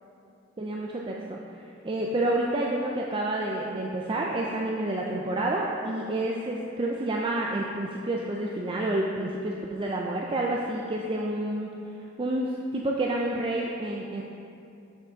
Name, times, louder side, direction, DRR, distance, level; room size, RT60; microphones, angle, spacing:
voice 1, 0.6-1.4 1.8-11.7 12.2-14.2, right 1 dB, 25° right, -2 dB, 0.4 m, -29 dB
7.1 x 5.8 x 3.9 m, 2.6 s
head